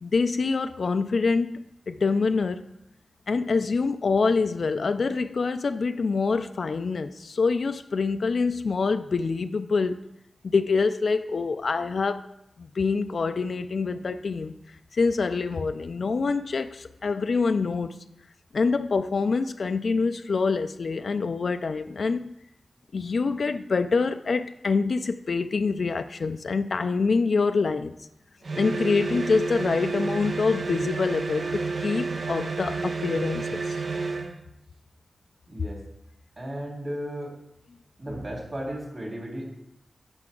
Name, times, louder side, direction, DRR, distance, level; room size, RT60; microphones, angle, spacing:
voice 1, 0.0-1.6 1.9-2.7 3.3-10.0 10.4-12.2 12.6-14.5 14.9-18.0 18.5-22.3 22.9-28.0 28.6-33.8, left 4 dB, 75° left, 8 dB, 0.4 m, -25 dB
sound 1, 28.4-34.4, right 4 dB, 70° right, 0.7 m, -30 dB
voice 2, 35.5-35.8 36.4-37.3 38.0-39.4, equal, 45° right, -2 dB, 3.5 m, -35 dB
9.7 x 6.7 x 3.8 m, 0.81 s
wide cardioid pair, 60°, 0 cm